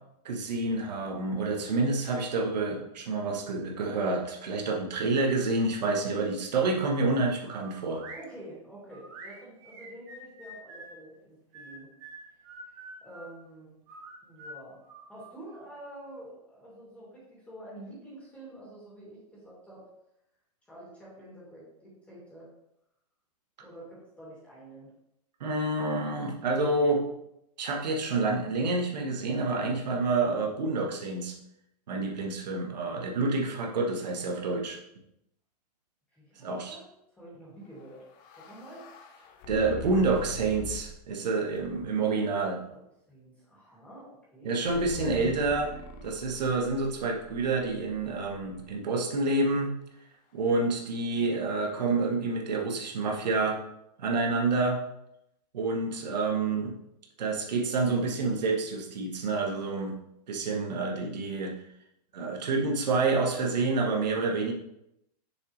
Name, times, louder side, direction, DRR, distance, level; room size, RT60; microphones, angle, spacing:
voice 1, 0.2-8.0 25.4-27.0 27.6-31.3 31.9-34.8 36.4-36.7 39.5-42.6 44.4-45.7 46.0-49.7 50.3-53.6 54.0-54.8 55.5-56.7 57.2-60.0 60.3-61.5 62.1-64.5, right 3 dB, 90° right, 0 dB, 1.5 m, -28 dB
sound 1, 7.4-8.3 8.9-11.0 11.5-13.4 13.9-15.7, right 2 dB, 40° right, 1.8 m, -47 dB
voice 2, 8.1-11.9 12.6-13.7 14.2-14.8 15.1-19.8 20.7-22.5 23.6-24.9 36.1-38.1 38.4-38.8 42.7-42.8 43.1-44.6 55.8-56.1, right 1 dB, 5° left, -7 dB, 2.6 m, -48 dB
sound 2, 37.8-41.1 41.6-42.1 44.7-48.8, left 2 dB, 35° left, 0.8 m, -44 dB
6.5 x 5.8 x 3.2 m, 0.81 s
supercardioid pair, 160°, 21 cm